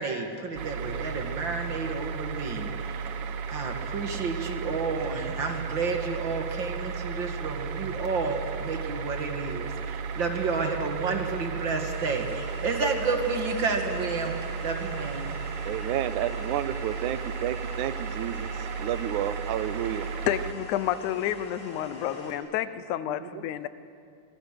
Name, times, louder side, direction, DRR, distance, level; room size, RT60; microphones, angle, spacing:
voice 1, 0.0-3.0 3.5-15.4, right 4 dB, 45° right, 5 dB, 2.1 m, -31 dB
sound 1, 0.6-20.5, right 5 dB, 65° right, 1.6 m, -34 dB
sound 2, 11.8-22.4, left 1 dB, 60° left, 5.8 m, -44 dB
voice 2, 15.6-20.1 23.1-23.4, right 12 dB, 85° right, 14 dB, 2.2 m, -31 dB
voice 3, 20.3-23.7, left 11 dB, 85° left, 14 dB, 2.2 m, -30 dB
27.0 x 20.5 x 6.6 m, 2.4 s
omnidirectional pair, 3.4 m